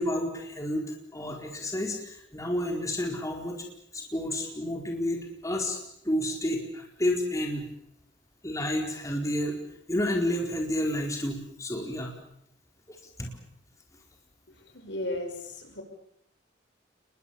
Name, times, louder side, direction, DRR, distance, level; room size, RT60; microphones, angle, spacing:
voice 1, 0.0-3.6 3.9-5.8 6.0-7.7 8.4-9.6 9.9-12.2 12.9-13.4, left 1 dB, 20° left, 2 dB, 4.4 m, -30 dB
voice 2, 14.7-15.8, left 1 dB, 70° left, 6 dB, 6.1 m, -35 dB
29.5 x 22.0 x 7.1 m, 0.73 s
head